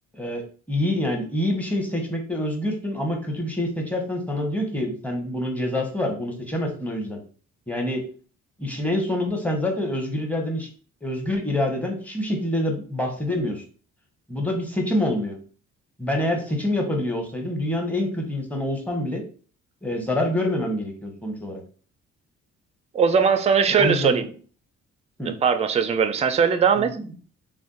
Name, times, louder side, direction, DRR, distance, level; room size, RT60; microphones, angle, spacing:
voice 1, 0.7-7.2 7.7-8.0 8.6-10.7 11.0-13.6 14.3-15.4 16.0-19.2 19.8-21.6 23.7-24.3 25.2-25.3 26.8-27.3, left 1 dB, 5° left, 0.8 m, -26 dB
voice 2, 22.9-24.3 25.3-27.0, right 6 dB, 20° right, 0.3 m, -20 dB
2.5 x 2.2 x 3.6 m
cardioid pair, 90°, 30 cm